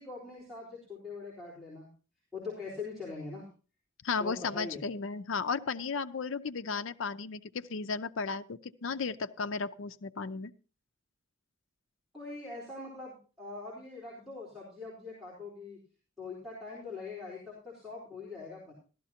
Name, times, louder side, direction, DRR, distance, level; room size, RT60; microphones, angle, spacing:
voice 1, 0.0-1.9 2.3-3.5 4.2-4.8 12.1-15.8 16.2-18.7, left 3 dB, ahead, -9 dB, 3.9 m, -42 dB
voice 2, 4.0-10.5, left 4 dB, 75° left, 10 dB, 0.6 m, -34 dB
15.0 x 12.5 x 2.8 m, 0.35 s
head